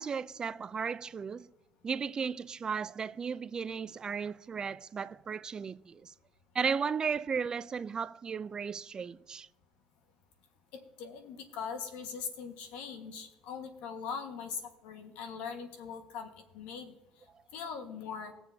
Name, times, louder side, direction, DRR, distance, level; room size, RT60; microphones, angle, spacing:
voice 1, 0.0-1.5 1.8-6.1 6.5-9.5, right 6 dB, 35° right, 0.4 m, -35 dB
voice 2, 10.7-16.3 16.5-16.9 17.5-18.3, left 6 dB, 90° left, 1.5 m, -41 dB
20.5 x 7.0 x 2.7 m
cardioid pair, 105°, 2 cm